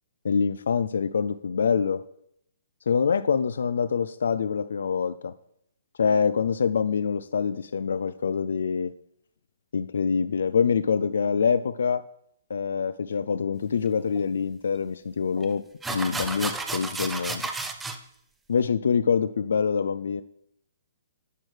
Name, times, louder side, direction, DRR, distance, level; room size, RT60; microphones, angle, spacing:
voice 1, 0.2-2.0 2.9-5.3 6.0-8.9 9.7-12.0 12.5-17.4 18.5-20.2, left 6 dB, 80° left, 13 dB, 0.3 m, -25 dB
sound 1, 14.2-14.3 15.4-15.5 15.8-18.0, right 3 dB, 5° right, 0.5 m, -32 dB
10.5 x 6.2 x 3.3 m, 0.72 s
hypercardioid pair, 165°, 0 cm